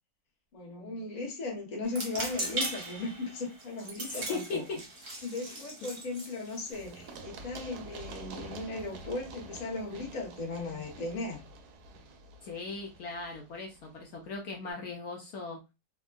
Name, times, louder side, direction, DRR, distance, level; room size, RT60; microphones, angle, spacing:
voice 1, 0.5-4.6 5.2-11.4, left 3 dB, 35° left, 0.7 m, -37 dB
sound 1, 1.8-7.2, right 2 dB, 45° right, 0.8 m, -39 dB
voice 2, 4.1-4.8 5.5-5.6 12.4-15.6, left 3 dB, 70° left, 1.0 m, -38 dB
Run, 6.7-14.4, right 3 dB, 75° right, 1.1 m, -48 dB
3.4 x 2.1 x 2.2 m
omnidirectional pair, 1.9 m